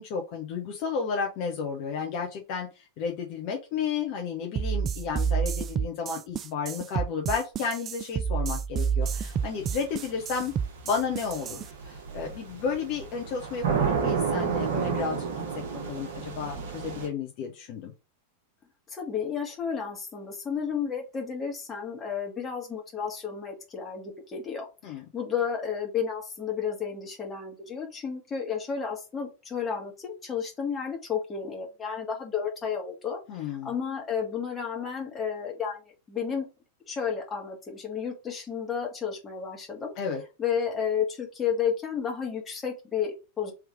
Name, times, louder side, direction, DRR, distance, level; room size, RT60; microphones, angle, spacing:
voice 1, 0.0-10.5 10.8-15.2 15.5-17.9 24.8-25.0 33.3-33.7 40.0-40.2, left 6 dB, 45° left, 1 dB, 0.9 m, -32 dB
sound 1, 4.6-11.7, right 7 dB, 30° right, 0.3 m, -29 dB
sound 2, 9.0-17.1, right 6 dB, 55° right, 1.1 m, -31 dB
voice 2, 18.9-36.4 36.8-39.9 40.4-43.5, left 7 dB, 20° left, 1 dB, 1.6 m, -32 dB
3.6 x 3.1 x 4.6 m, 0.29 s
figure-of-eight pair, 90°, 0 cm